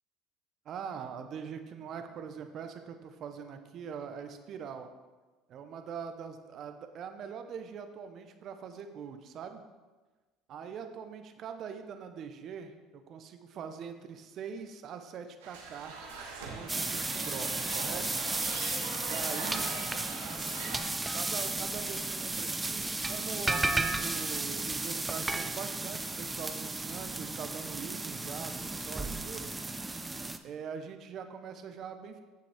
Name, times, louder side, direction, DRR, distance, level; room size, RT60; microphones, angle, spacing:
voice 1, 0.6-4.9 5.5-9.6 10.5-16.0 16.5-18.2 19.1-19.7 21.1-29.5 30.4-32.2, right 7 dB, 55° right, 7 dB, 0.9 m, -42 dB
sound 1, 15.4-20.8, right 4 dB, 85° right, 1.5 m, -42 dB
sound 2, 16.7-30.4, right 2 dB, 15° right, 0.6 m, -34 dB
9.3 x 6.9 x 3.5 m, 1.3 s
hypercardioid pair, 75°, 0 cm